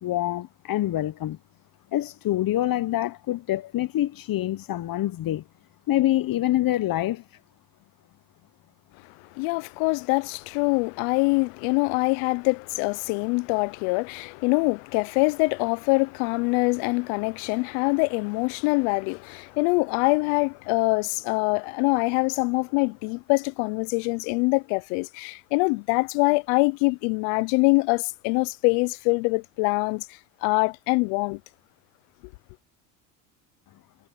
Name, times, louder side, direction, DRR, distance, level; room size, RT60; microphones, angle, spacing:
voice 1, 0.0-1.4 1.9-5.4 5.9-7.4, left 14 dB, 45° left, 1.0 m, -26 dB
voice 2, 9.4-30.1 30.4-31.4, left 29 dB, 70° left, 0.8 m, -24 dB
hypercardioid pair, 80°, 50 cm